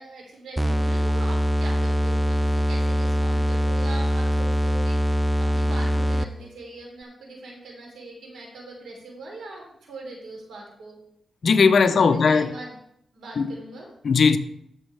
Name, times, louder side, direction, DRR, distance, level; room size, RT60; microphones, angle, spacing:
voice 1, 0.0-11.0 12.0-12.7 13.1-13.9, right 2 dB, 90° right, 3.4 m, -41 dB
sound 1, 0.6-6.5, equal, 5° right, 0.4 m, -23 dB
voice 2, 11.4-12.5 13.4-13.6 14.0-14.4, left 5 dB, 60° left, 0.7 m, -18 dB
13.5 x 6.3 x 3.4 m
cardioid pair, 95°, 0 cm